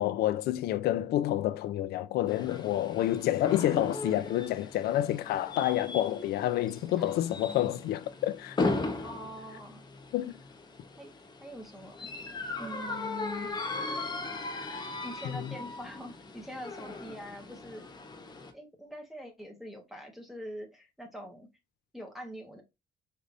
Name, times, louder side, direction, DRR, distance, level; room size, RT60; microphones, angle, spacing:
voice 1, 0.0-8.7 10.1-10.4 15.3-15.6, left 13 dB, 85° left, 0.4 m, -29 dB
sound 1, 2.3-18.5, left 3 dB, 25° left, 0.9 m, -38 dB
voice 2, 9.0-9.8 11.0-12.1 12.6-13.5 15.0-17.9 18.5-21.5 21.9-22.6, equal, ahead, 1.4 m, -44 dB
5.2 x 3.3 x 2.5 m
cardioid pair, 145°, 16 cm